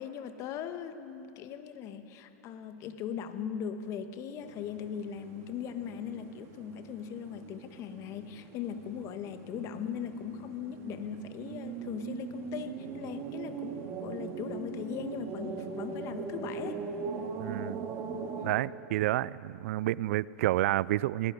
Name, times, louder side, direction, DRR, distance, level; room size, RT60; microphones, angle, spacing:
voice 1, 0.0-16.8 18.4-18.6, left 8 dB, 40° left, 9 dB, 1.3 m, -39 dB
sound 1, 4.4-18.5, right 5 dB, 35° right, 2.1 m, -41 dB
voice 2, 17.4-17.9 18.4-21.3, right 15 dB, 65° right, 22 dB, 0.4 m, -29 dB
18.0 x 18.0 x 9.2 m, 2.9 s
hypercardioid pair, 120°, 8 cm